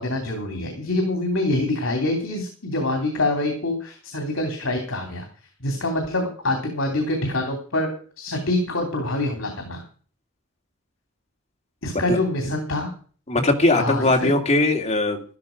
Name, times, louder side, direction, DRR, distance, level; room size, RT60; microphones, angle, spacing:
voice 1, 0.0-5.3 5.6-7.9 8.2-9.8 11.8-12.9 13.7-14.3, left 2 dB, 75° left, 4 dB, 2.9 m, -25 dB
voice 2, 13.3-15.2, left 2 dB, 30° left, 3 dB, 2.3 m, -20 dB
13.0 x 12.5 x 5.1 m, 0.42 s
head